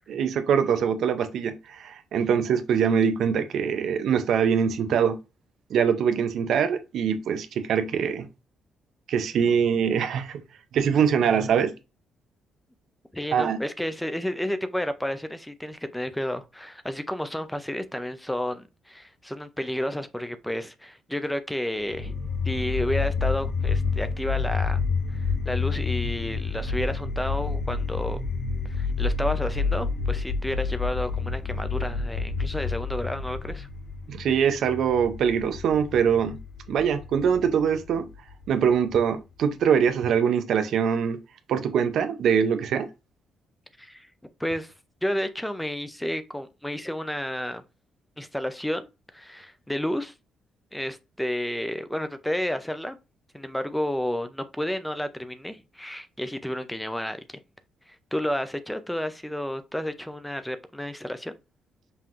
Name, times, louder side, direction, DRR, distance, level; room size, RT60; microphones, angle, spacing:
voice 1, 0.1-5.2 5.7-8.3 9.1-10.4 10.7-11.7 13.3-13.6 34.1-36.4 36.7-38.1 38.5-41.2 41.5-42.9, right 7 dB, 70° right, 0.6 m, -23 dB
voice 2, 13.1-22.2 22.4-24.8 25.1-28.2 28.6-33.7 43.8-44.1 44.4-44.7 45.0-47.6 48.2-48.9 49.1-50.1 50.7-53.0 53.3-57.4 57.9-61.4, left 1 dB, 5° left, 0.5 m, -31 dB
sound 1, 21.9-38.9, left 4 dB, 45° left, 0.6 m, -29 dB
5.7 x 2.8 x 2.5 m
cardioid pair, 90°, 0 cm